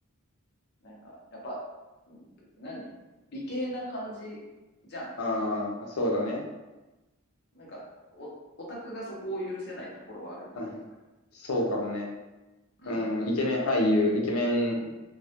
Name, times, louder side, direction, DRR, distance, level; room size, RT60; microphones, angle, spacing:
voice 1, 0.8-1.6 2.1-2.3 2.6-2.9 3.3-4.4 4.8-5.1 7.5-7.8 8.1-8.3 8.6-10.8 12.8-13.0, equal, 50° left, -4 dB, 0.6 m, -38 dB
voice 2, 5.2-6.4 10.6-10.7 11.3-12.1 12.9-14.9, left 1 dB, 90° left, 0 dB, 0.5 m, -27 dB
2.2 x 2.0 x 2.7 m, 1.1 s
head